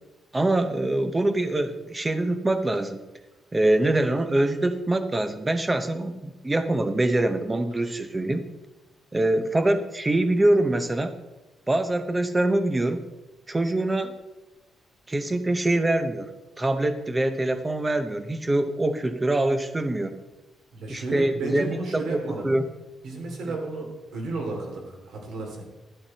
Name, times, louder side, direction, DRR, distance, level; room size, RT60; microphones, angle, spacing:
voice 1, 0.3-3.0 3.5-8.4 9.1-11.2 11.7-13.1 13.5-14.1 15.1-16.3 16.6-20.2 20.9-22.6, right 1 dB, 15° right, 9 dB, 0.7 m, -24 dB
voice 2, 20.7-22.5 23.0-25.6, right 2 dB, 65° right, 1 dB, 3.1 m, -33 dB
12.0 x 10.0 x 4.3 m, 1.0 s
cardioid pair, 175°, 0 cm